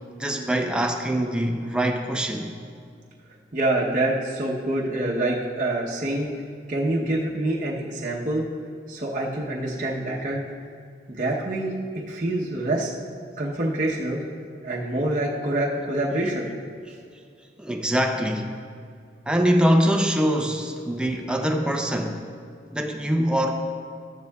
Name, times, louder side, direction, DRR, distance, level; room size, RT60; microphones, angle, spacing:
voice 1, 0.2-2.6 17.6-18.7 19.3-22.2 22.7-23.5, equal, 5° right, 3 dB, 0.6 m, -23 dB
voice 2, 3.5-6.3 6.7-8.4 8.9-10.4 11.1-11.7 12.1-12.9 13.4-14.2 14.6-16.5, right 1 dB, 45° right, -4 dB, 0.9 m, -26 dB
13.0 x 9.9 x 2.3 m, 2.3 s
head